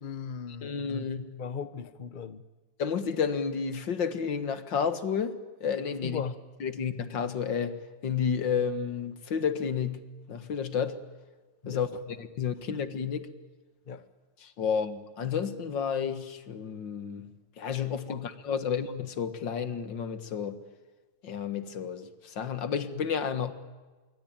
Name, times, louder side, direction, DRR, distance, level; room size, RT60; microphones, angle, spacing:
voice 1, 0.0-2.4 6.0-6.4 11.6-11.8 13.9-14.1 18.1-18.2, left 6 dB, 30° left, 1.0 m, -38 dB
voice 2, 0.6-1.2 2.8-6.2 6.6-11.0 11.7-11.9 12.2-13.3 14.6-20.6 21.2-23.5, left 7 dB, 75° left, 2.3 m, -31 dB
26.5 x 24.0 x 9.0 m
omnidirectional pair, 2.1 m